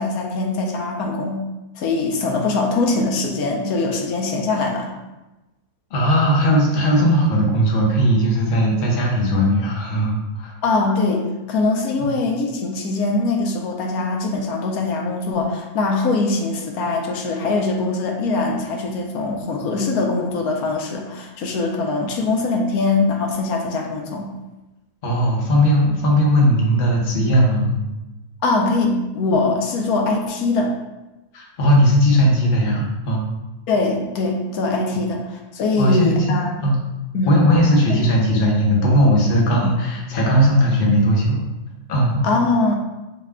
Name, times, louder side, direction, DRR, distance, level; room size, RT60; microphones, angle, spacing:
voice 1, 0.0-1.4 1.8-4.9 10.6-24.3 28.4-30.7 33.7-36.5 37.1-37.5 42.2-42.7, left 3 dB, 85° left, 2 dB, 1.1 m, -22 dB
voice 2, 5.9-10.5 12.0-12.1 25.0-27.8 31.3-33.2 35.8-36.7 37.3-41.4 41.9-42.2, equal, 45° left, -2 dB, 0.9 m, -18 dB
5.6 x 2.2 x 3.5 m, 1.0 s
omnidirectional pair, 1.5 m